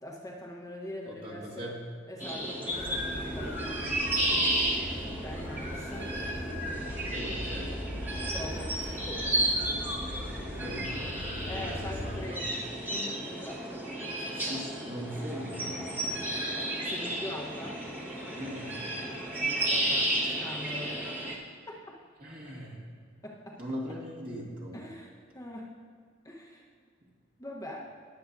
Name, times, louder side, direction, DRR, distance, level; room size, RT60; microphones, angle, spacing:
voice 1, 0.0-1.7 2.1-3.8 5.0-6.1 8.3-9.2 11.4-12.5 12.9-14.6 16.6-17.8 19.4-21.2 21.7-21.8 23.2-23.6 24.7-25.7 26.2-26.6 27.4-27.9, left 1 dB, 15° left, -3 dB, 1.1 m, -43 dB
voice 2, 1.1-1.8 4.2-4.7 7.1-7.8 10.6-12.5 14.4-16.4 18.4-18.9 22.2-22.8 23.6-24.8, equal, 45° right, -4 dB, 2.2 m, -40 dB
sound 1, 2.2-21.3, right 1 dB, 10° right, 1.5 m, -33 dB
sound 2, 2.7-12.3, left 1 dB, 85° left, 2.8 m, -39 dB
20.5 x 7.8 x 2.7 m, 2.1 s
head